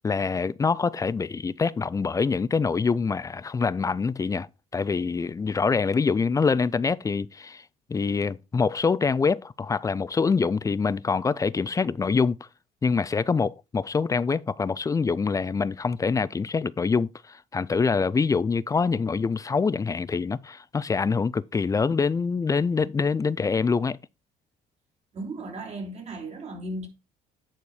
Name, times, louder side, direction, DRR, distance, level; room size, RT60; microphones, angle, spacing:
voice 1, 0.0-4.5 4.7-7.6 7.9-12.4 12.8-24.0, left 5 dB, 20° left, 0.4 m, -25 dB
voice 2, 25.1-26.9, right 2 dB, 40° right, 3.0 m, -35 dB
9.6 x 4.4 x 4.8 m
cardioid pair, 110°, 17 cm